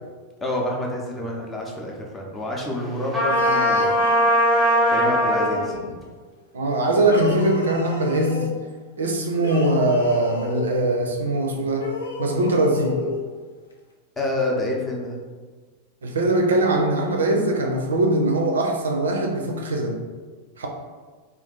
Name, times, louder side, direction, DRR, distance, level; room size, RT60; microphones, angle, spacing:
voice 1, 0.4-4.0 4.9-6.0 14.2-15.2, left 1 dB, 15° left, -1 dB, 0.6 m, -28 dB
Trumpet, 3.1-5.6, equal, 5° right, 1.0 m, -19 dB
sound 1, 3.2-6.0 7.0-8.5 9.3-10.8 11.7-13.2, left 2 dB, 70° left, 0.4 m, -32 dB
voice 2, 6.5-8.4 9.0-11.9 12.2-13.0 16.0-20.0 20.6-20.7, right 2 dB, 70° right, 2 dB, 0.4 m, -21 dB
2.5 x 2.4 x 3.7 m, 1.4 s
figure-of-eight pair, 90°, 0 cm